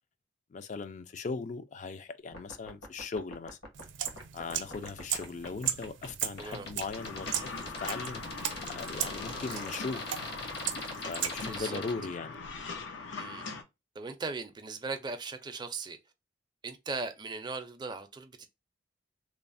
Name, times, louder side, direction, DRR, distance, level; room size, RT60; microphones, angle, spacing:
voice 1, 0.5-3.6 4.3-8.3 8.6-10.0 11.0-12.5, left 4 dB, 40° left, 0.4 m, -39 dB
sound 1, 2.3-11.9, left 2 dB, 60° left, 1.1 m, -42 dB
sound 2, 3.7-11.6, right 10 dB, 80° right, 0.5 m, -38 dB
sound 3, 7.0-13.6, left 3 dB, 90° left, 0.6 m, -41 dB
voice 2, 11.4-11.8 13.2-13.5 13.9-16.0 16.6-18.5, right 4 dB, 25° right, 0.4 m, -38 dB
3.1 x 2.0 x 2.5 m
head